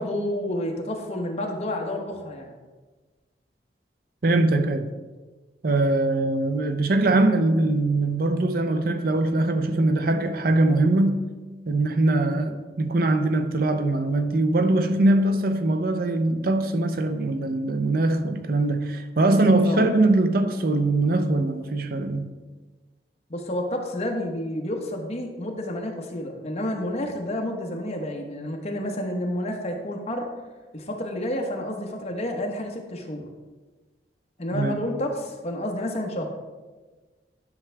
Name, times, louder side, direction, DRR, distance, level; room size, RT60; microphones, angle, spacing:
voice 1, 0.0-2.6 12.3-12.5 19.6-19.8 23.3-30.3 30.7-33.3 34.4-36.4, left 1 dB, 35° left, 1.1 m, -30 dB
voice 2, 4.2-4.9 5.6-11.2 11.7-22.3 34.5-34.8, right 2 dB, 55° right, 0.6 m, -22 dB
10.5 x 6.1 x 3.4 m
head